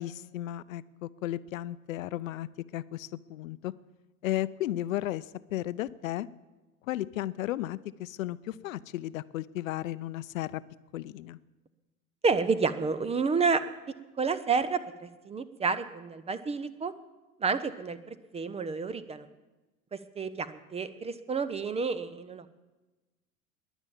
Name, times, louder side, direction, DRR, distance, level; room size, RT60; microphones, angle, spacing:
voice 1, 0.0-3.7 4.2-5.3 5.5-6.3 6.9-10.6 10.9-11.4, left 14 dB, 65° left, 18 dB, 0.6 m, -34 dB
voice 2, 12.2-13.6 14.2-16.9 17.4-19.3 20.2-22.4, right 5 dB, 15° right, 14 dB, 0.6 m, -30 dB
21.0 x 7.2 x 7.3 m, 1.1 s
figure-of-eight pair, 75°, 44 cm